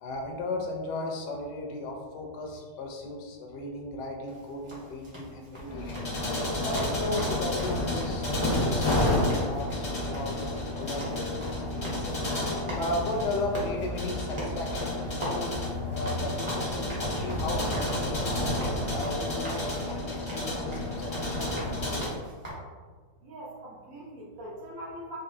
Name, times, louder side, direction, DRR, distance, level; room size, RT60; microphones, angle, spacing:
voice 1, 0.0-6.1 6.6-11.4 11.7-12.2 12.5-18.5 18.9-21.2, left 2 dB, 75° left, 1 dB, 1.2 m, -35 dB
sound 1, 4.3-22.5, equal, 25° right, 0.7 m, -41 dB
sound 2, 5.7-22.1, left 1 dB, 30° left, 0.5 m, -30 dB
voice 2, 23.2-25.2, right 1 dB, 65° right, -4 dB, 0.9 m, -42 dB
4.2 x 2.6 x 2.6 m, 1.5 s
omnidirectional pair, 1.9 m